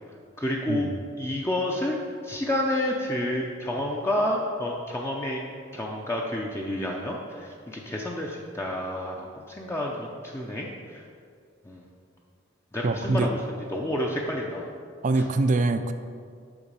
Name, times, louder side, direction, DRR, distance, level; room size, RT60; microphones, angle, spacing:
voice 1, 0.4-0.9 1.2-2.0 2.2-5.4 5.7-11.0 11.6-11.8 12.7-14.7 15.2-15.3, left 1 dB, 15° left, -1 dB, 0.5 m, -29 dB
voice 2, 12.8-13.3 15.0-15.9, right 3 dB, 40° right, 9 dB, 0.4 m, -24 dB
7.0 x 5.5 x 5.2 m, 2.2 s
head